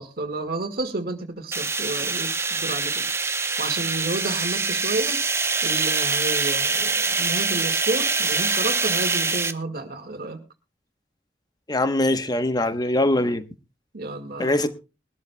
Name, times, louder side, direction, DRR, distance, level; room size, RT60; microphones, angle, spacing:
voice 1, 0.0-5.2 5.6-10.4 13.9-14.6, right 2 dB, 55° right, 1.7 m, -31 dB
sound 1, 1.5-9.5, right 4 dB, 15° right, 0.7 m, -24 dB
voice 2, 11.7-13.4 14.4-14.7, left 1 dB, 25° left, 1.0 m, -22 dB
22.0 x 12.5 x 2.2 m
head